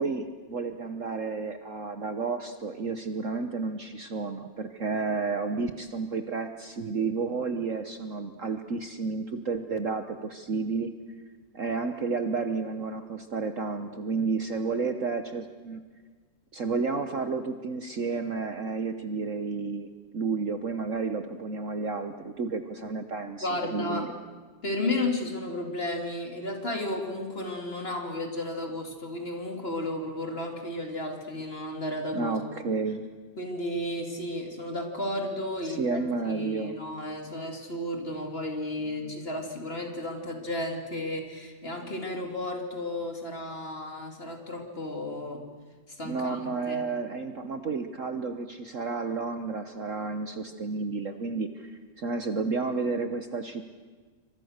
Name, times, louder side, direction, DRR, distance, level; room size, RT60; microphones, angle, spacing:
voice 1, 0.0-10.9 11.5-15.8 16.5-24.1 32.1-33.0 35.6-36.8 38.9-39.1 46.0-53.7, right 4 dB, 50° right, 8 dB, 1.3 m, -31 dB
voice 2, 23.4-24.1 24.6-32.4 33.4-36.0 36.3-45.4 45.9-46.8, left 1 dB, 30° left, 3 dB, 3.1 m, -33 dB
28.5 x 25.5 x 6.6 m, 1.5 s
omnidirectional pair, 2.0 m